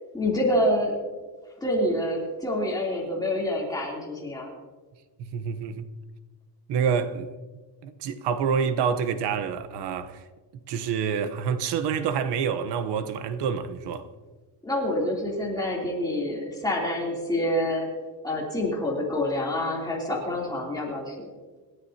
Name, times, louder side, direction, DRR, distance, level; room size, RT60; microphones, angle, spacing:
voice 1, 0.1-1.0 1.6-4.5 14.6-17.9 18.2-21.3, left 1 dB, 10° left, 3.2 m, -27 dB
voice 2, 5.2-5.9 6.7-7.3 7.8-10.2 10.7-14.1, right 6 dB, 70° right, 1.1 m, -27 dB
27.0 x 13.0 x 2.9 m
cardioid pair, 180°, 42 cm